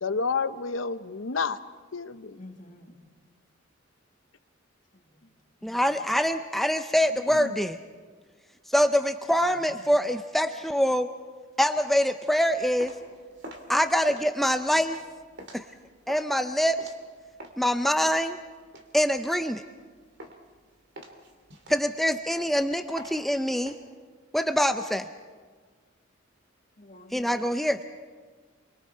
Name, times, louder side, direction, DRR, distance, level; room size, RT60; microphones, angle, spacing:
voice 1, 0.0-1.6 1.9-2.4 7.3-7.6, left 4 dB, 75° left, 12 dB, 0.9 m, -30 dB
voice 2, 2.4-3.0 4.9-5.3 5.6-6.0 9.4-9.8 15.0-15.1 26.8-27.5, left 1 dB, 40° left, -1 dB, 1.9 m, -50 dB
voice 3, 5.6-7.8 8.7-11.1 11.6-12.9 13.7-15.0 15.5-15.6 16.1-16.8 17.6-18.4 18.9-19.6 21.7-23.7 24.3-25.1 27.1-27.8, equal, ahead, 7 dB, 0.6 m, -24 dB
sound 1, 12.5-17.7 18.1-19.9 20.2-20.6 21.0-23.8, right 1 dB, 60° right, 2.5 m, -46 dB
29.5 x 23.5 x 4.6 m, 1.5 s
head